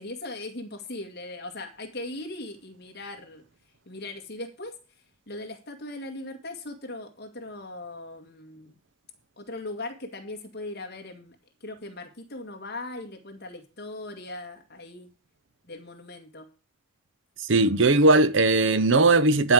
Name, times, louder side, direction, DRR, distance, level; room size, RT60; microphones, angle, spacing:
voice 1, 0.0-3.4 3.9-4.8 5.3-8.8 9.4-11.4 11.6-15.1 15.7-16.5, left 2 dB, 50° left, 2.1 m, -39 dB
voice 2, 17.5-19.5, right 2 dB, 60° right, 0.7 m, -19 dB
11.0 x 5.0 x 7.5 m
head